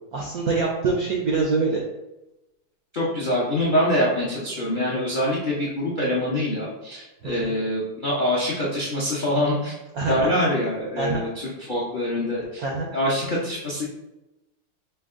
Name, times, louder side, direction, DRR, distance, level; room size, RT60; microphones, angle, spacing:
voice 1, 0.1-1.8 7.2-7.6 9.9-10.4 11.0-11.2 12.6-12.9, right 4 dB, 75° right, -2 dB, 0.8 m, -25 dB
voice 2, 2.9-9.7 10.0-12.6 12.9-13.8, left 1 dB, 65° left, -6 dB, 0.4 m, -25 dB
5.2 x 2.3 x 3.6 m, 0.97 s
omnidirectional pair, 2.3 m